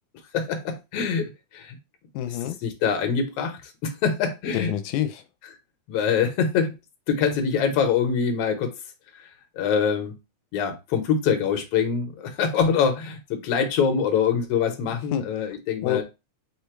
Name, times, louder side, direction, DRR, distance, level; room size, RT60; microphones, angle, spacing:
voice 1, 0.3-1.8 2.6-4.7 5.9-6.8 7.1-8.8 9.1-9.3 9.6-10.2 10.5-16.0, left 6 dB, 65° left, 1.8 m, -24 dB
voice 2, 2.1-2.6 4.5-5.2 14.9-15.3 15.8-16.0, left 12 dB, 85° left, 1.9 m, -27 dB
5.1 x 2.3 x 4.5 m
omnidirectional pair, 3.4 m